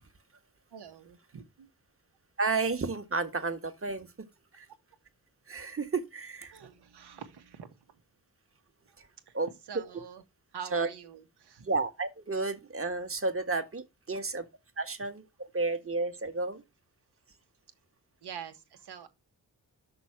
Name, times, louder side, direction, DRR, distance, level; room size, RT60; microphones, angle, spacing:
voice 1, 0.7-1.7 6.5-8.0 8.9-9.0 9.3-9.4 9.7-10.2 10.5-11.7 18.2-19.1, right 8 dB, 75° right, 1.4 m, -45 dB
voice 2, 2.4-4.1 4.5-4.7 5.5-6.5 9.0-9.1 9.3-9.5 10.7-10.9 11.6-14.4 14.8-16.6, right 3 dB, 35° right, 1.5 m, -32 dB
6.1 x 4.7 x 5.8 m
cardioid pair, 60°, 39 cm